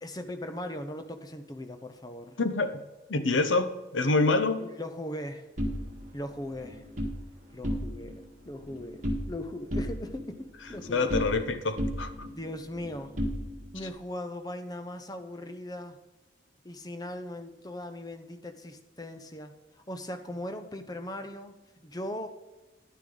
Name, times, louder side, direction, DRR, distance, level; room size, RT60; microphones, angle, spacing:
voice 1, 0.0-2.4 4.6-5.5 6.1-6.8 7.5-11.3 12.2-13.1 13.7-16.0 16.6-19.5 19.9-21.5 21.8-22.3, left 1 dB, 20° left, 8 dB, 0.7 m, -39 dB
voice 2, 2.4-2.8 3.1-4.7 10.9-12.3, left 3 dB, 85° left, 10 dB, 0.9 m, -26 dB
sound 1, 5.6-7.2 7.5-8.2 8.5-9.4 9.7-11.5 11.8-13.9, equal, 40° right, 1.6 m, -34 dB
10.5 x 9.5 x 3.9 m, 1.1 s
head